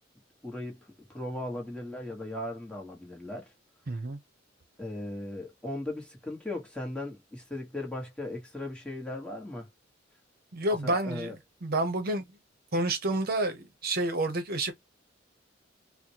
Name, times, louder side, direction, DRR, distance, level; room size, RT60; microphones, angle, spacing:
voice 1, 0.4-3.5 4.8-9.7 10.8-11.4, left 1 dB, 5° left, 1.2 m, -37 dB
voice 2, 3.9-4.2 10.5-11.3 11.6-12.3 12.7-14.7, right 1 dB, 50° right, 0.8 m, -29 dB
4.1 x 2.1 x 2.8 m
head